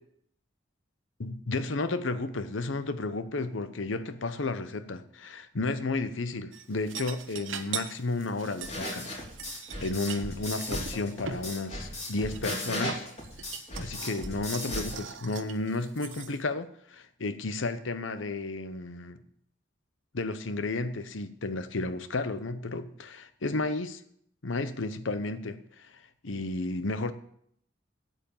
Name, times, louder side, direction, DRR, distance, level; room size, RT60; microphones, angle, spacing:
voice 1, 1.2-9.2 9.8-13.1 13.8-19.2 20.1-24.0 24.4-27.1, left 3 dB, 80° left, 12 dB, 0.9 m, -32 dB
sound 1, 6.5-11.4 12.1-16.4, right 7 dB, 80° right, 1.0 m, -41 dB
sound 2, 8.6-15.0, left 1 dB, 35° left, 3.4 m, -36 dB
8.6 x 8.4 x 7.1 m, 0.69 s
head